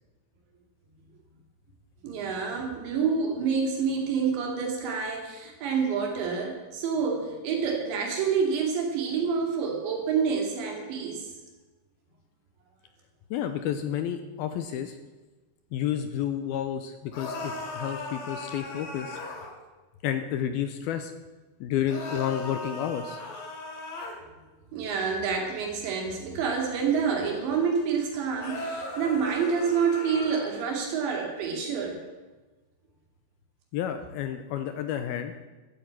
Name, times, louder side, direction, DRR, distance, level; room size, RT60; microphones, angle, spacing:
voice 1, 2.0-11.3 24.7-32.0, right 6 dB, 90° right, 1 dB, 4.8 m, -28 dB
voice 2, 13.3-15.0 15.7-19.2 20.0-21.1 21.6-23.2 33.7-35.3, left 9 dB, 80° left, 8 dB, 2.3 m, -30 dB
sound 1, 17.1-19.5 21.9-24.2 28.4-30.5, left 2 dB, 60° left, 3.8 m, -37 dB
13.5 x 8.5 x 8.8 m, 1.2 s
omnidirectional pair, 5.0 m